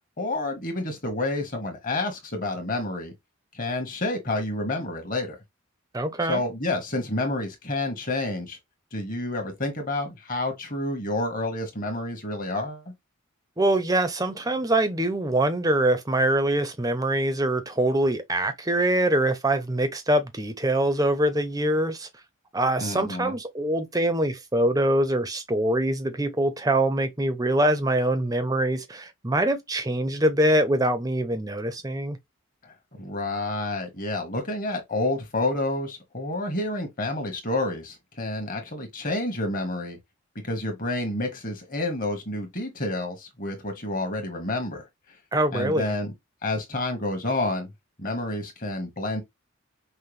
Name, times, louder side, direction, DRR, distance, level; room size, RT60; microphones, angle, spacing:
voice 1, 0.2-3.1 3.5-5.4 6.3-8.6 8.9-12.8 22.8-23.3 32.6-40.0 40.4-44.8 45.5-46.1 46.4-47.7 48.0-49.2, left 2 dB, 40° left, 1.4 m, -29 dB
voice 2, 5.9-6.4 13.6-22.1 22.5-32.2 45.3-45.9, right 1 dB, 15° right, 0.6 m, -24 dB
5.6 x 2.2 x 3.3 m
head